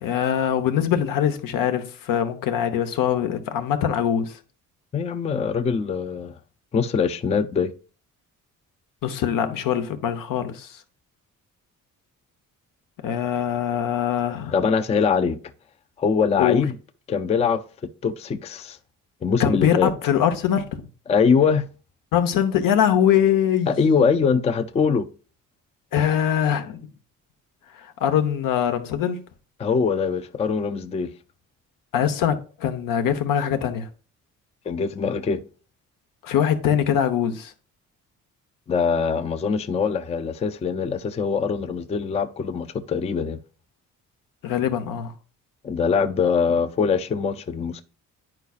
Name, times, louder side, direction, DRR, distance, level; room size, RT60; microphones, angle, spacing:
voice 1, 0.0-4.4 9.0-10.8 13.0-14.5 16.4-16.7 19.4-20.9 22.1-23.8 25.9-26.9 27.7-29.2 31.9-33.9 36.2-37.5 44.4-45.1, left 9 dB, 80° left, 0.9 m, -23 dB
voice 2, 4.9-6.3 6.7-7.7 14.5-15.4 16.0-16.7 17.1-17.6 18.0-18.8 19.2-19.9 21.1-21.6 23.7-25.1 29.6-31.1 34.7-35.4 38.7-43.4 45.6-47.8, left 6 dB, 20° left, 0.3 m, -22 dB
9.7 x 4.6 x 2.4 m
cardioid pair, 140°, 33 cm